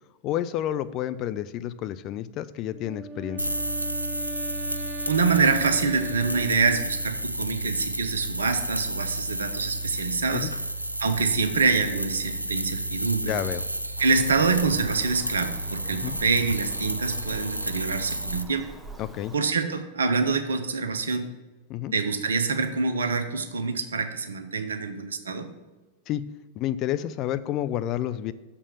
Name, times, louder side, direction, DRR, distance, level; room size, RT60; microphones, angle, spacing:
voice 1, 0.2-3.5 10.3-10.5 13.3-13.7 16.0-16.2 19.0-19.3 21.7-21.9 26.1-26.3 26.6-28.3, left 12 dB, 35° left, 13 dB, 0.4 m, -30 dB
Wind instrument woodwind instrument, 2.7-7.2, right 2 dB, 30° right, 0.5 m, -38 dB
sound 1, 3.4-18.4, right 1 dB, 85° right, 0.4 m, -31 dB
voice 2, 5.1-10.5 11.0-13.3 14.0-18.7 19.3-21.3 21.9-25.5, right 4 dB, 70° right, 8 dB, 0.8 m, -26 dB
Bird vocalization bird call bird song, 14.0-19.4, right 2 dB, 5° right, 0.8 m, -45 dB
6.9 x 4.6 x 6.9 m, 1.2 s
figure-of-eight pair, 90°, 0 cm